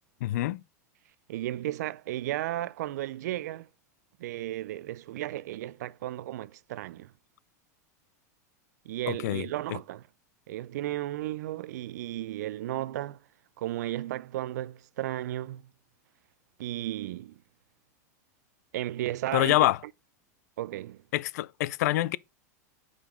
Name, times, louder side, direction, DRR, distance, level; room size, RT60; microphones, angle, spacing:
voice 1, 0.2-0.6 9.1-9.4 19.3-19.8 21.1-22.2, left 16 dB, 70° left, 0.4 m, -26 dB
voice 2, 1.3-3.7 4.2-7.1 8.8-10.1 10.5-13.2 13.6-15.7 16.6-17.4 18.7-19.7 20.6-21.0, right 14 dB, 75° right, 0.4 m, -34 dB
5.4 x 5.0 x 3.5 m
hypercardioid pair, 115°, 9 cm